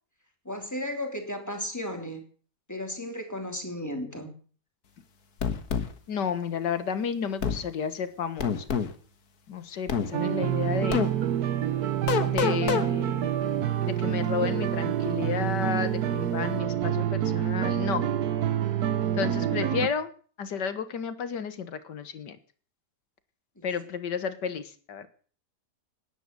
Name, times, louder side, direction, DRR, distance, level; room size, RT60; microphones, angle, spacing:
voice 1, 0.4-2.2 2.7-4.3 23.6-23.7, left 1 dB, 10° left, 4 dB, 3.0 m, -34 dB
sound 1, 5.4-5.9 7.4-7.6 8.4-8.9 9.9-10.1 10.9-11.1 12.1-12.9, left 7 dB, 60° left, 1.9 m, -26 dB
voice 2, 6.1-8.7 9.5-11.0 12.2-13.3 13.9-18.1 19.2-20.1 20.4-22.4 23.6-25.1, left 7 dB, 85° left, 12 dB, 2.0 m, -32 dB
sound 2, 10.1-19.9, right 10 dB, 65° right, 1.4 m, -27 dB
18.5 x 10.0 x 6.7 m, 0.43 s
omnidirectional pair, 1.8 m